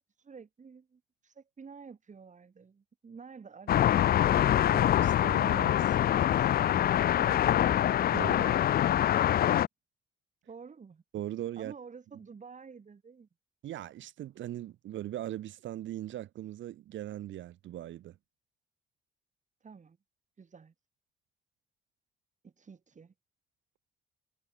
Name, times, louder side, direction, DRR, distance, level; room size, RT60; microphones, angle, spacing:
voice 1, 0.0-5.0 6.3-7.7 10.5-11.0 11.6-13.3 19.6-20.0 20.4-20.7 22.4-23.1, right 5 dB, 40° right, 5.9 m, -50 dB
sound 1, 3.7-9.7, left 11 dB, 50° left, 0.4 m, -25 dB
voice 2, 4.7-6.0 8.1-8.5 11.1-11.7 13.6-18.2, right 13 dB, 70° right, 1.2 m, -40 dB
cardioid pair, 90°, 20 cm